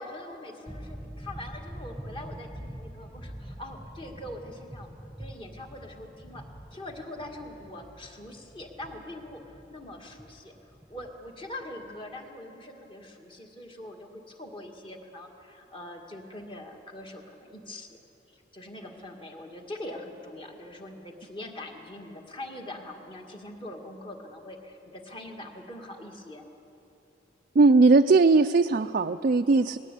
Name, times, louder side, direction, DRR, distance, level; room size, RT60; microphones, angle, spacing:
voice 1, 0.0-4.9 5.2-6.4 6.7-10.5 10.9-18.0 18.3-26.4, left 1 dB, 25° left, 2 dB, 2.0 m, -43 dB
sound 1, 0.7-12.2, equal, 5° left, 1.3 m, -45 dB
voice 2, 27.6-29.8, right 3 dB, 45° right, 6 dB, 0.4 m, -19 dB
20.0 x 17.0 x 8.4 m, 2.9 s
head